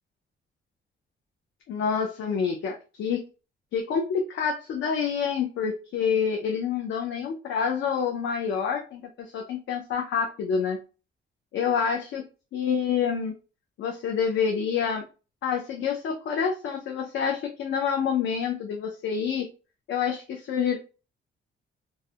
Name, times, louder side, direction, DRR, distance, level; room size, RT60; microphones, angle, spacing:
voice 1, 1.7-3.2 3.7-10.8 11.5-12.2 12.5-13.3 13.8-15.0 15.4-19.5 19.9-20.8, left 6 dB, 70° left, 2 dB, 0.4 m, -27 dB
2.3 x 2.0 x 2.7 m, 0.33 s
wide cardioid pair, 150°, 21 cm